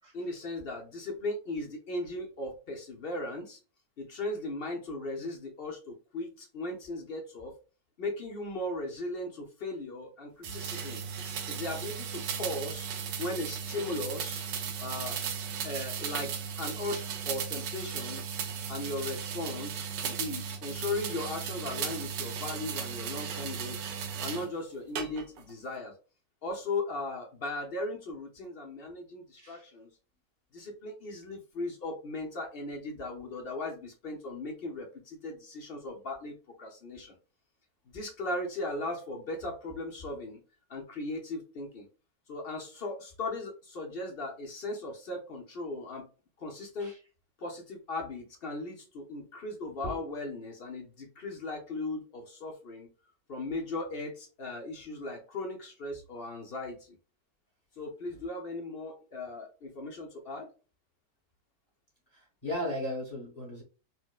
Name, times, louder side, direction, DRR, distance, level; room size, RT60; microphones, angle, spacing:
voice 1, 0.1-3.6 4.0-7.5 8.0-11.0 11.5-12.9 13.2-14.4 14.8-15.2 15.6-18.2 18.7-23.8 24.2-25.9 26.4-29.9 30.5-37.1 37.9-40.4 40.7-41.9 42.3-46.1 46.4-46.9 47.4-52.9 53.3-57.0 57.8-60.5, left 2 dB, 55° left, 1 dB, 0.6 m, -37 dB
sound 1, 10.4-24.5 25.0-25.5, right 7 dB, 75° right, 1.3 m, -36 dB
voice 2, 29.4-29.7 46.8-47.0 49.8-50.0 62.1-63.6, equal, 25° left, -3 dB, 1.1 m, -36 dB
4.4 x 2.1 x 2.2 m, 0.34 s
omnidirectional pair, 1.9 m